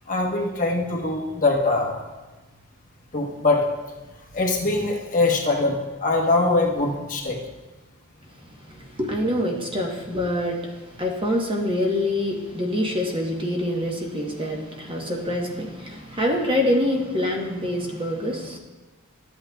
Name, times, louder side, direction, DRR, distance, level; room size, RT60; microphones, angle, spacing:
voice 1, 0.1-2.0 3.1-3.7 4.3-7.4, left 2 dB, 40° left, -1 dB, 1.0 m, -22 dB
voice 2, 8.4-18.6, left 1 dB, 25° right, 0 dB, 0.9 m, -26 dB
12.5 x 8.4 x 2.2 m, 1.2 s
head